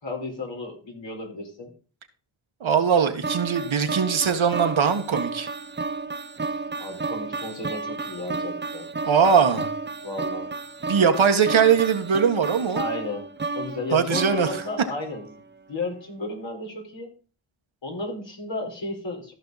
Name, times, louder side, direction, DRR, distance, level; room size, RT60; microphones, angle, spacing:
voice 1, 0.0-1.7 6.8-8.9 10.0-10.5 12.8-13.2 13.5-15.4 15.7-17.1 17.8-19.3, left 2 dB, 60° left, 4.4 m, -33 dB
voice 2, 2.6-5.5 9.0-9.7 10.9-12.8 13.9-14.6, right 6 dB, 70° right, 1.5 m, -21 dB
sound 1, 3.2-15.4, right 4 dB, 20° right, 0.7 m, -32 dB
14.5 x 5.6 x 4.1 m
cardioid pair, 50°, 49 cm